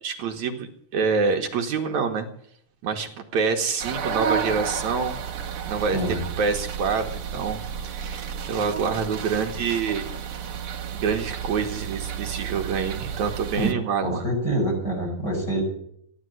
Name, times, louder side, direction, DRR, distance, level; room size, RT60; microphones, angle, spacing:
voice 1, 0.0-2.3 2.8-5.2 5.7-10.1 10.9-14.2, right 5 dB, 70° right, 3 dB, 2.6 m, -26 dB
sound 1, 3.8-13.7, right 7 dB, 55° right, 2.0 m, -32 dB
voice 2, 14.0-15.6, right 1 dB, 20° left, -1 dB, 7.1 m, -25 dB
15.5 x 11.5 x 7.7 m, 0.67 s
omnidirectional pair, 3.5 m